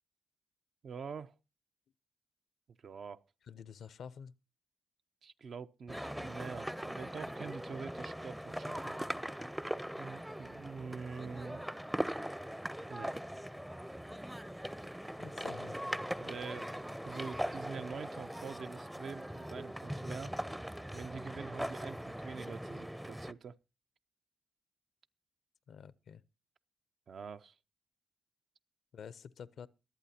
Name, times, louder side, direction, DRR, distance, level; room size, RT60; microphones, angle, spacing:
voice 1, 0.8-1.3 2.8-3.2 5.2-8.9 10.0-11.6 12.9-13.2 16.2-16.7 17.0-20.3 20.9-23.6 27.1-27.6, right 5 dB, 65° right, 0.5 m, -45 dB
voice 2, 3.5-4.3 15.2-15.8 25.7-26.2 28.9-29.7, left 7 dB, 75° left, 0.5 m, -49 dB
sound 1, 5.9-23.3, equal, 5° right, 0.5 m, -40 dB
23.0 x 8.4 x 2.8 m
cardioid pair, 70°, 0 cm